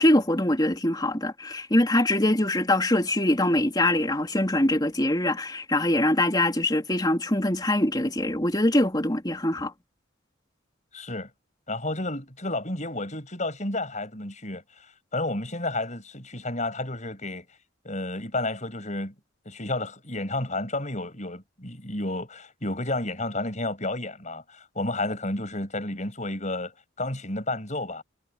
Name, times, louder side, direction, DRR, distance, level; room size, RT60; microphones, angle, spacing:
voice 1, 0.0-9.7, left 1 dB, 20° left, 3.3 m, -23 dB
voice 2, 10.9-11.3 11.7-17.4 17.8-19.1 19.5-26.7 27.0-28.0, left 2 dB, 35° left, 7.6 m, -31 dB
head